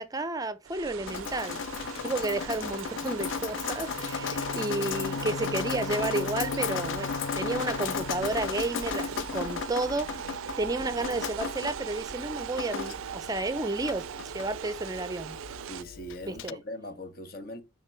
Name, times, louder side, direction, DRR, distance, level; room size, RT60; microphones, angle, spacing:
voice 1, 0.0-1.6 2.0-15.4 16.3-16.5, right 2 dB, 20° right, 0.5 m, -32 dB
sound 1, 0.6-15.8, right 8 dB, 85° right, 0.4 m, -40 dB
Drip, 1.1-16.5, left 7 dB, 70° left, 0.3 m, -36 dB
Bowed string instrument, 3.8-8.7, left 5 dB, 85° left, 1.6 m, -40 dB
voice 2, 15.7-17.6, left 1 dB, 50° left, 1.4 m, -40 dB
9.9 x 3.7 x 4.4 m
head